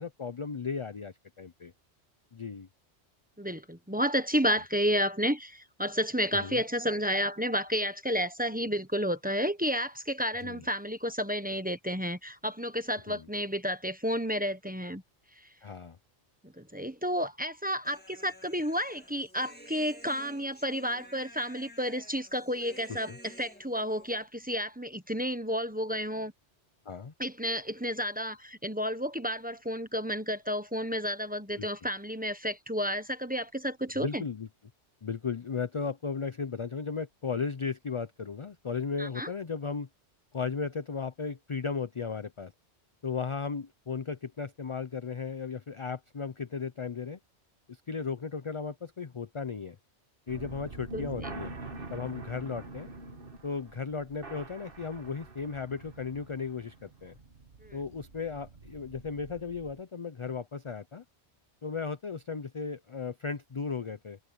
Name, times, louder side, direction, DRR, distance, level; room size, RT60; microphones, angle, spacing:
voice 1, 0.0-1.7 2.3-2.7 6.3-6.6 10.4-10.7 13.1-13.3 15.6-16.0 22.9-23.2 26.9-27.1 31.6-31.7 33.9-34.5 35.0-39.9 40.3-42.5 43.0-47.2 47.7-49.8 50.3-51.6 51.9-52.9 53.4-57.1 57.7-61.0 61.6-64.2, left 5 dB, 35° left, 0.5 m, -35 dB
voice 2, 3.4-15.0 16.6-26.3 27.2-34.2 39.0-39.3 50.9-51.3 57.6-57.8, equal, 10° right, 1.2 m, -31 dB
Human voice, 17.8-24.3, equal, 10° left, 1.8 m, -52 dB
sound 1, 50.3-59.8, right 2 dB, 50° right, 1.7 m, -45 dB
omnidirectional pair, 1.2 m